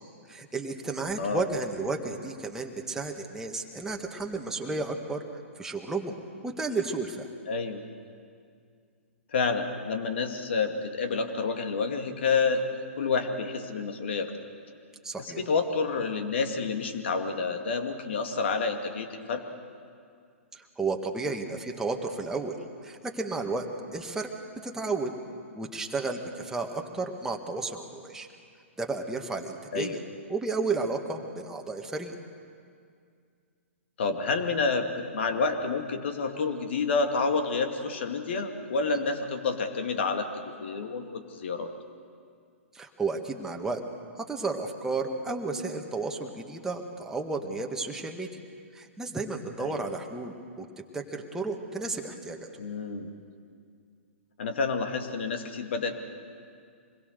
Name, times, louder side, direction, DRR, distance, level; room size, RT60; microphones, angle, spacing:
voice 1, 0.3-5.2 5.6-6.1 6.4-7.3 15.0-15.4 20.5-22.6 22.8-24.3 24.6-25.1 25.6-28.3 28.8-30.0 30.3-32.1 42.7-43.8 44.2-48.3 48.7-50.7 50.9-52.5, right 3 dB, 5° right, 2 dB, 1.8 m, -32 dB
voice 2, 7.5-7.8 9.3-12.6 13.0-14.3 15.4-19.4 29.7-30.0 34.0-40.3 40.6-41.7 49.6-49.8 52.6-53.1 54.4-55.9, left 4 dB, 55° left, 5 dB, 2.3 m, -29 dB
26.0 x 21.5 x 6.7 m, 2.2 s
figure-of-eight pair, 115°, 7 cm